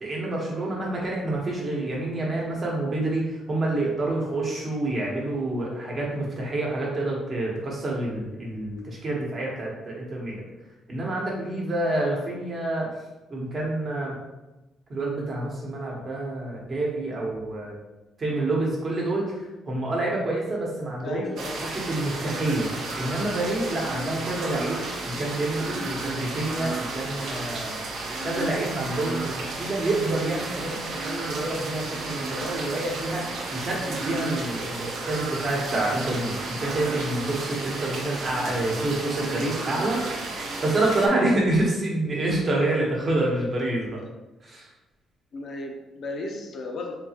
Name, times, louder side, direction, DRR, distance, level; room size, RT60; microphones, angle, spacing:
voice 1, 0.0-10.4 10.9-12.9 13.3-14.2 14.9-17.8 18.2-21.2 21.9-22.7 23.0-27.7 28.2-44.0 44.4-44.7, right 2 dB, 35° right, -3 dB, 1.0 m, -28 dB
voice 2, 21.0-21.6 45.3-46.9, left 2 dB, 50° left, 1 dB, 0.5 m, -34 dB
sound 1, 21.4-41.1, right 2 dB, 65° right, 0.6 m, -33 dB
3.7 x 2.8 x 2.8 m, 1.0 s
cardioid pair, 140°, 0 cm